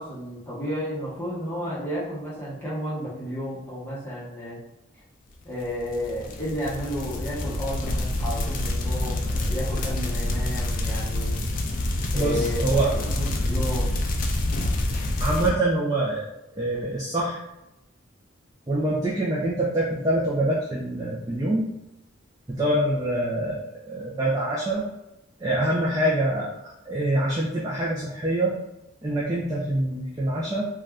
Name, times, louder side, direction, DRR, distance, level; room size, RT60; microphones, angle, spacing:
voice 1, 0.0-4.6 5.4-11.4 12.1-14.0, equal, 10° left, -9 dB, 0.9 m, -32 dB
sound 1, 5.7-15.5, left 1 dB, 45° left, 0.4 m, -27 dB
voice 2, 12.1-12.9 15.2-16.3 16.6-17.4 18.7-21.7 22.5-24.8 25.4-28.6 29.0-30.7, right 1 dB, 20° right, -6 dB, 0.4 m, -25 dB
2.6 x 2.3 x 3.3 m, 0.90 s
head